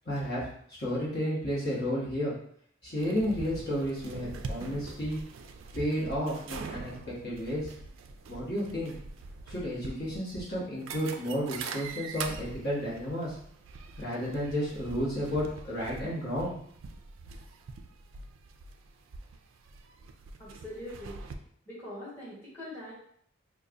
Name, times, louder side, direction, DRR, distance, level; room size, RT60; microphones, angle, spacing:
voice 1, 0.0-0.4 0.8-2.3 2.8-5.2 5.7-6.9 7.2-7.7 8.3-8.9 9.5-13.3 14.0-16.5, equal, 55° left, -7 dB, 1.3 m, -32 dB
sound 1, 3.0-21.3, right 4 dB, 75° right, 0.4 m, -44 dB
voice 2, 20.4-21.2 21.7-22.9, left 1 dB, 10° left, -9 dB, 1.3 m, -42 dB
5.1 x 2.4 x 2.5 m, 0.64 s
head